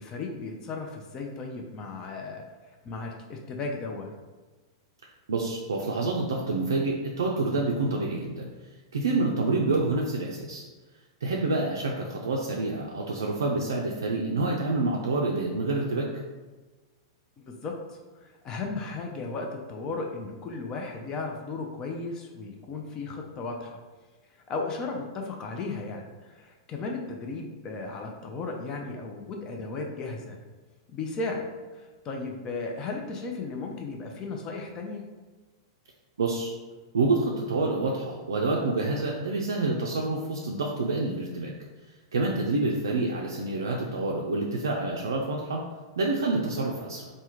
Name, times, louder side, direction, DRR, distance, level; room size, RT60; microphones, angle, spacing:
voice 1, 0.0-2.4 2.8-4.1 17.4-23.8 24.5-30.4 30.9-31.5 31.7-35.0, left 3 dB, 30° left, 2 dB, 0.5 m, -35 dB
voice 2, 5.3-8.5 8.9-10.6 11.2-16.1 36.2-36.5 36.9-41.5 42.1-45.6 46.0-47.1, right 3 dB, 75° right, -2 dB, 0.3 m, -27 dB
3.3 x 2.1 x 2.9 m, 1.3 s
figure-of-eight pair, 100°, 2 cm